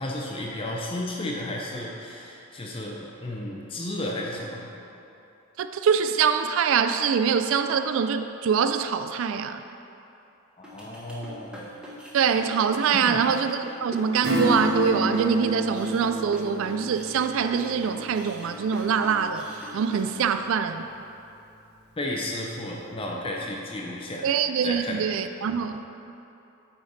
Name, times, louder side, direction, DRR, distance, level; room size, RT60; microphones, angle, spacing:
voice 1, 0.0-4.7 10.6-11.6 12.9-13.2 22.0-24.3 24.6-25.0, left 1 dB, 25° left, -2 dB, 0.6 m, -33 dB
voice 2, 5.6-9.6 12.1-19.5 19.7-20.8 24.2-25.9, right 6 dB, 65° right, 9 dB, 0.3 m, -24 dB
sound 1, 10.6-20.1, equal, 5° right, 1.0 m, -42 dB
Acoustic guitar / Strum, 14.2-20.4 20.8-20.9, equal, 50° right, 0.7 m, -31 dB
8.7 x 5.1 x 4.0 m, 2.8 s
head